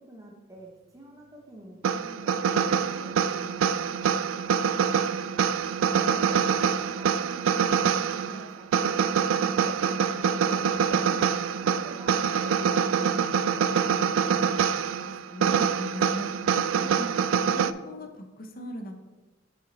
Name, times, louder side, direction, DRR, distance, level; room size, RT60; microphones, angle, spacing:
voice 1, 0.0-4.8 5.8-9.1 9.5-13.8, equal, 15° right, -1 dB, 0.8 m, -48 dB
sound 1, 1.8-17.7, right 7 dB, 85° right, 0.3 m, -25 dB
voice 2, 15.2-16.3 16.8-17.1 17.5-19.0, equal, 45° left, 5 dB, 0.9 m, -39 dB
7.5 x 4.5 x 4.1 m, 1.2 s
head